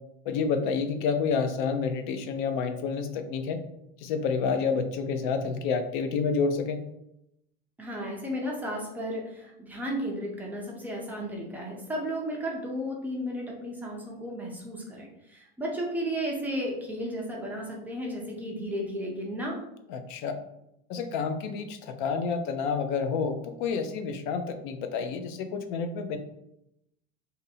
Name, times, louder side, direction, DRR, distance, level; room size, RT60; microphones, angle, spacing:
voice 1, 0.3-3.6 4.0-6.8 19.9-20.4 20.9-26.2, left 5 dB, 50° left, 7 dB, 0.5 m, -29 dB
voice 2, 7.8-19.6, equal, 5° right, -2 dB, 0.4 m, -34 dB
2.7 x 2.6 x 4.1 m, 0.81 s
supercardioid pair, 155°, 32 cm